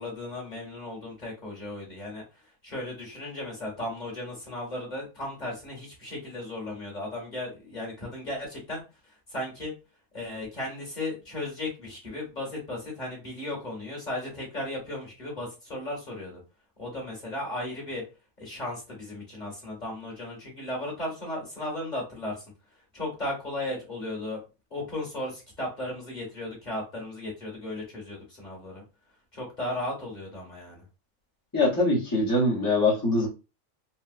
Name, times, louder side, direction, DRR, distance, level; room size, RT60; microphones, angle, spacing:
voice 1, 0.0-2.2 2.6-8.8 9.3-9.7 10.1-16.4 16.8-18.0 18.4-22.4 22.9-24.4 24.7-28.8 29.3-30.8, left 1 dB, 30° left, -2 dB, 1.5 m, -35 dB
voice 2, 31.5-33.3, left 2 dB, 15° left, -7 dB, 1.0 m, -23 dB
4.3 x 2.2 x 2.4 m, 0.29 s
omnidirectional pair, 1.5 m